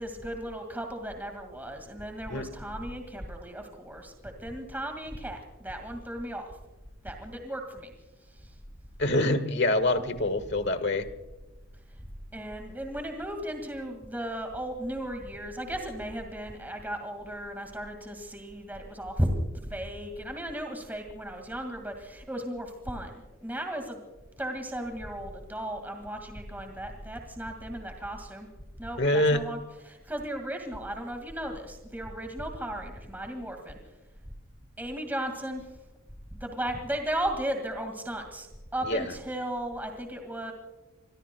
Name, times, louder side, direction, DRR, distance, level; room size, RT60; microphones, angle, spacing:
voice 1, 0.0-6.5 7.0-7.9 8.3-8.5 12.3-24.0 24.4-28.5 28.8-29.6 29.9-33.8 34.8-35.6 36.3-40.5, right 1 dB, 10° right, 4 dB, 2.0 m, -35 dB
voice 2, 9.0-11.1 29.0-29.4 38.9-39.1, left 1 dB, 50° left, 11 dB, 1.6 m, -25 dB
26.5 x 22.5 x 2.3 m, 1.1 s
head